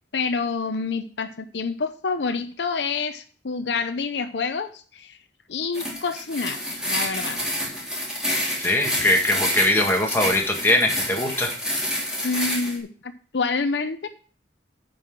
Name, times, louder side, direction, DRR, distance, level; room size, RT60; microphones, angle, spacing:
voice 1, 0.1-5.2 5.5-6.6 6.9-7.4 12.2-14.1, left 4 dB, 70° left, 9 dB, 0.7 m, -27 dB
sound 1, 5.7-12.8, equal, 5° right, 3.3 m, -28 dB
voice 2, 8.6-11.5, left 1 dB, 10° left, 0 dB, 1.7 m, -21 dB
8.9 x 5.5 x 6.0 m, 0.41 s
head